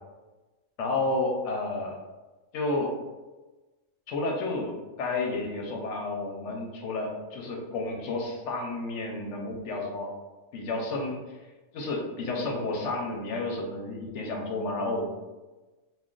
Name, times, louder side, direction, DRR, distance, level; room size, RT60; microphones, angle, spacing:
voice 1, 0.8-2.0 2.5-2.9 4.1-10.1 10.5-11.3 11.7-15.1, left 2 dB, 70° left, 0 dB, 0.8 m, -31 dB
2.3 x 2.2 x 3.6 m, 1.2 s
omnidirectional pair, 1.4 m